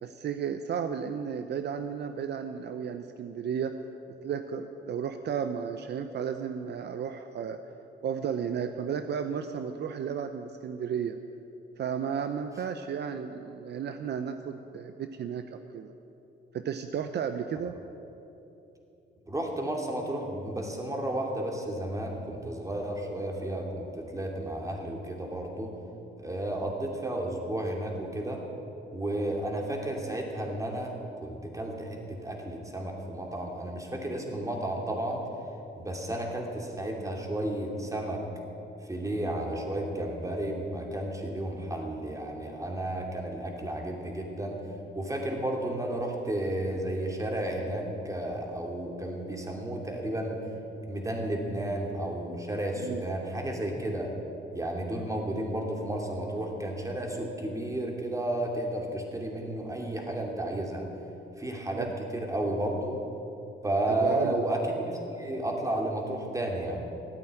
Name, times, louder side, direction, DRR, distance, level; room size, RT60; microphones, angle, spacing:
voice 1, 0.0-3.8 4.2-7.6 8.0-11.2 11.8-15.4 15.7-15.9 16.5-17.7 52.8-53.1 61.8-61.9 64.0-64.5, right 7 dB, 60° right, 8 dB, 0.7 m, -33 dB
voice 2, 19.3-25.7 26.2-28.4 28.9-30.9 31.2-35.3 35.8-38.2 38.9-44.6 44.9-50.4 50.8-54.1 54.5-60.9 61.4-62.9 63.6-66.8, right 1 dB, 15° right, 1 dB, 2.7 m, -32 dB
14.5 x 8.8 x 9.1 m, 3.0 s
cardioid pair, 90°, 20 cm